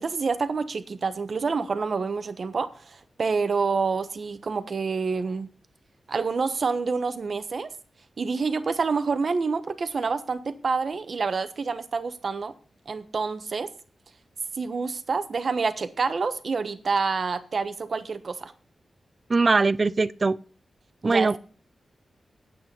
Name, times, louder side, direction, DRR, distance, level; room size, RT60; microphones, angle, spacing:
voice 1, 0.0-5.5 6.1-7.7 8.2-12.5 12.9-13.7 14.6-18.5 21.0-21.4, right 4 dB, 55° right, 1.1 m, -27 dB
voice 2, 19.3-20.4 21.0-21.4, right 3 dB, 40° right, 0.5 m, -21 dB
9.1 x 8.5 x 5.4 m
wide cardioid pair, 95°, 0 cm